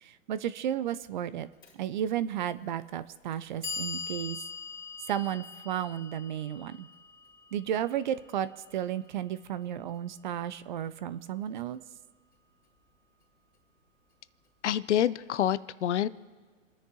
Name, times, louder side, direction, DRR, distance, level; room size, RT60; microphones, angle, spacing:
voice 1, 0.0-1.5 1.7-4.4 5.1-6.9 7.5-11.8, right 10 dB, 40° right, 15 dB, 0.5 m, -33 dB
Clock, 1.6-1.7 2.7-2.8 3.3-9.4, left 5 dB, 10° left, 3.8 m, -42 dB
voice 2, 14.6-16.1, left 11 dB, 60° left, 17 dB, 0.7 m, -27 dB
29.0 x 9.9 x 3.0 m, 1.5 s
hypercardioid pair, 130°, 39 cm